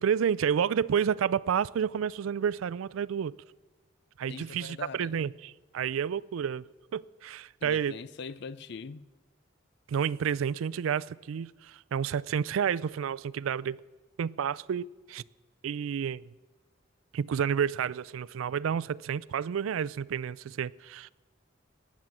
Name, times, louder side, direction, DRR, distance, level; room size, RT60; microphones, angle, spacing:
voice 1, 0.0-3.3 4.2-6.6 6.9-8.0 9.9-13.8 14.2-15.2 15.6-16.2 17.1-21.1, right 7 dB, 85° right, 0.4 m, -30 dB
voice 2, 4.3-5.2 7.6-9.0, left 5 dB, 60° left, 0.5 m, -42 dB
18.5 x 7.4 x 7.7 m
head